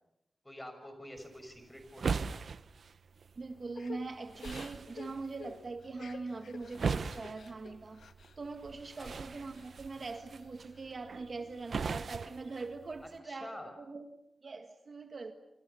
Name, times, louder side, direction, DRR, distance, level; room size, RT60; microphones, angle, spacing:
voice 1, 0.4-2.3 9.0-9.2 13.0-13.7, left 1 dB, 10° left, 7 dB, 6.1 m, -47 dB
sound 1, 1.2-13.2, right 5 dB, 60° right, 0.9 m, -41 dB
voice 2, 3.4-8.1 8.4-14.1 14.4-15.3, right 3 dB, 45° right, 7 dB, 1.6 m, -42 dB
Crying sobbing / Breathing, 3.7-8.4 8.7-9.7 10.1-10.9, left 6 dB, 80° left, 1.3 m, -51 dB
28.5 x 26.5 x 6.9 m, 0.87 s
wide cardioid pair, 125°, 0 cm